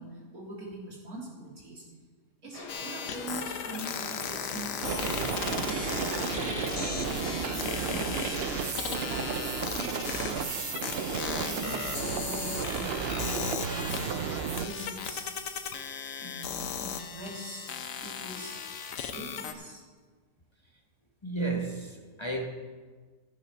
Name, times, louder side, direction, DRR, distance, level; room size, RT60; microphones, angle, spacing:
voice 1, 0.0-1.8 2.4-5.1 5.5-6.8 7.8-10.6 11.1-14.0 14.6-15.3 16.2-17.7 18.0-18.6 19.1-19.8, right 1 dB, 55° right, -4 dB, 3.4 m, -43 dB
sound 1, 2.5-8.8, left 4 dB, 80° left, 1.7 m, -43 dB
sound 2, 2.7-19.5, left 7 dB, 60° left, 1.1 m, -36 dB
sound 3, 4.8-14.7, right 7 dB, 90° right, 0.5 m, -33 dB
voice 2, 21.2-22.5, right 2 dB, 30° left, 2 dB, 0.5 m, -32 dB
14.5 x 6.4 x 5.5 m, 1.4 s
omnidirectional pair, 1.7 m